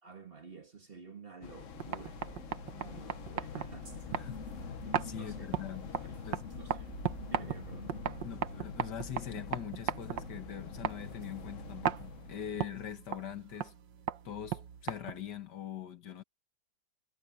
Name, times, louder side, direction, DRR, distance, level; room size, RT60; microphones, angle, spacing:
voice 1, 0.0-4.2 5.0-5.6 5.9-6.1 6.5-6.9 7.3-7.9, right 5 dB, 35° right, 1.8 m, -51 dB
sound 1, 1.4-12.6, left 7 dB, 50° left, 1.2 m, -46 dB
sound 2, 1.6-15.4, right 10 dB, 85° right, 1.7 m, -39 dB
sound 3, 3.5-13.5, right 1 dB, 70° right, 4.9 m, -61 dB
voice 2, 4.2-5.9 6.2-6.5 8.2-13.7 14.2-16.2, left 9 dB, 70° left, 1.9 m, -43 dB
omnidirectional pair, 1.9 m